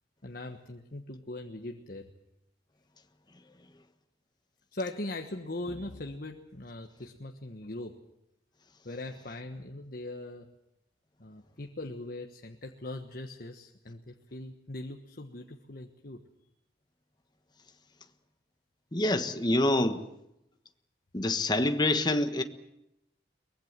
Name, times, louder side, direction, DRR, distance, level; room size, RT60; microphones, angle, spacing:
voice 1, 0.2-2.1 4.7-8.0 8.8-10.5 11.2-16.2, left 2 dB, 55° left, 1.3 m, -40 dB
voice 2, 18.9-20.0 21.1-22.4, left 1 dB, 25° left, 1.3 m, -26 dB
23.0 x 20.5 x 7.5 m
head